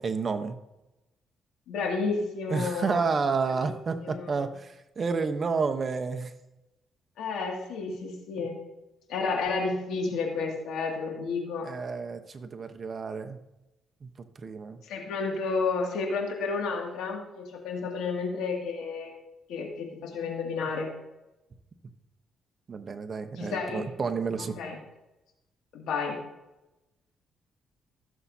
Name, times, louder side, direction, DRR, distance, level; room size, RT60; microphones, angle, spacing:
voice 1, 0.0-0.6 2.5-6.3 11.6-13.4 14.0-14.1 14.4-14.8 22.7-24.6, right 5 dB, 40° right, 7 dB, 0.9 m, -30 dB
voice 2, 1.7-3.0 3.6-3.7 4.0-4.5 7.2-8.6 9.1-11.7 14.8-19.1 19.5-20.9 23.4-23.9 24.4-24.8 25.7-26.2, left 4 dB, 85° left, 1 dB, 2.3 m, -31 dB
15.5 x 7.2 x 2.8 m, 0.96 s
cardioid pair, 90°, 0 cm